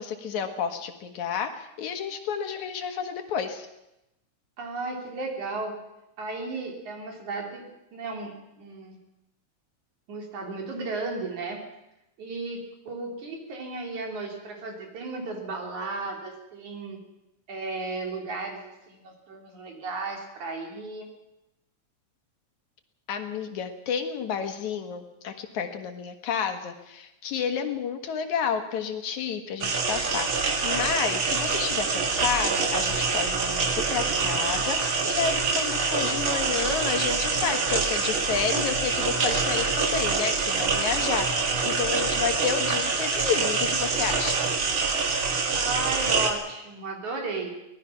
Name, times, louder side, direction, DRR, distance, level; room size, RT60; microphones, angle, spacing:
voice 1, 0.0-3.7 23.1-44.4, left 7 dB, 70° left, 6 dB, 2.9 m, -30 dB
voice 2, 4.6-5.7 6.2-9.0 10.1-11.6 12.2-17.0 17.5-21.1 45.5-47.5, right 3 dB, 70° right, 2 dB, 4.8 m, -34 dB
sound 1, 29.6-46.3, right 4 dB, 45° right, 2.5 m, -26 dB
24.0 x 18.0 x 5.9 m, 0.90 s
omnidirectional pair, 3.5 m